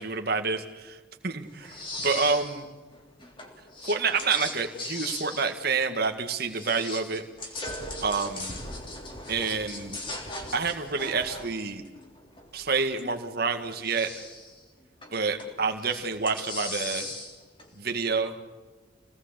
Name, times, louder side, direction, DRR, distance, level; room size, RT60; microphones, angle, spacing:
voice 1, 0.0-2.6 3.9-7.2 8.0-8.6 9.3-10.0 10.5-11.8 12.5-14.1 15.1-17.1 17.8-18.3, right 4 dB, 50° right, 5 dB, 2.0 m, -28 dB
sound 1, 1.6-2.7 2.9-6.2 6.5-13.0 13.6-14.6 15.0-15.5 15.8-17.7, left 2 dB, 25° left, 3.5 m, -39 dB
27.0 x 19.0 x 8.3 m, 1.3 s
head